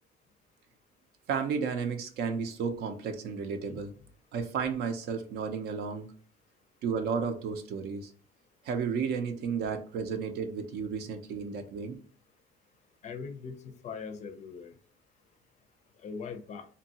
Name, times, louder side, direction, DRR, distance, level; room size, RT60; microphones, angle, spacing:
voice 1, 1.3-3.9 4.3-6.1 6.8-8.1 8.6-12.0, right 6 dB, 70° right, 7 dB, 0.6 m, -33 dB
voice 2, 13.0-14.7 16.0-16.7, left 5 dB, 45° left, 9 dB, 0.4 m, -41 dB
2.7 x 2.2 x 2.8 m, 0.44 s
cardioid pair, 110°, 17 cm